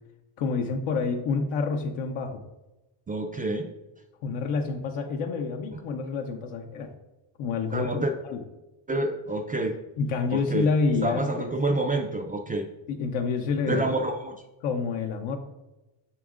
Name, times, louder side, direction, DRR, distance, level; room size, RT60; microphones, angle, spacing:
voice 1, 0.4-2.4 4.2-6.9 7.4-8.4 10.0-11.5 12.9-13.8 14.6-15.4, left 4 dB, 70° left, 3 dB, 0.8 m, -28 dB
voice 2, 3.1-3.7 5.7-5.8 7.7-8.1 8.9-9.8 10.3-10.7 11.0-12.7 13.7-14.4, right 2 dB, 20° right, 3 dB, 0.4 m, -28 dB
6.9 x 6.2 x 2.5 m, 1.0 s
cardioid pair, 100°, 50 cm